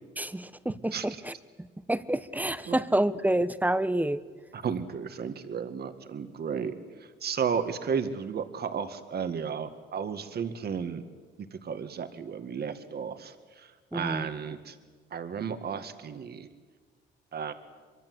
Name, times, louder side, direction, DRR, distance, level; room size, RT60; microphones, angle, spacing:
voice 1, 0.2-4.2 13.9-14.3, right 1 dB, 10° right, 14 dB, 1.0 m, -28 dB
voice 2, 4.5-6.7 7.0-11.0 11.5-14.8 15.1-16.5 17.3-17.5, right 6 dB, 55° right, 9 dB, 2.0 m, -33 dB
24.0 x 23.5 x 8.0 m, 1.5 s
cardioid pair, 90°, 20 cm